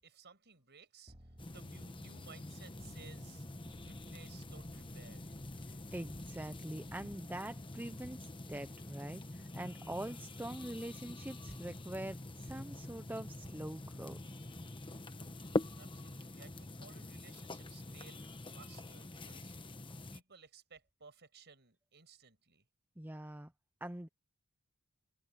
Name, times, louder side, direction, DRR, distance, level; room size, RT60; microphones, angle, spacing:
voice 1, 0.0-3.5 3.8-5.3 15.0-22.6, right 5 dB, 50° right, 6.2 m, -59 dB
sound 1, 1.1-6.6, equal, 30° right, 4.0 m, -59 dB
sound 2, 1.4-20.2, left 2 dB, 25° left, 1.2 m, -45 dB
voice 2, 5.9-14.2 23.0-23.5 23.8-24.1, right 1 dB, 10° right, 0.7 m, -44 dB
open air
head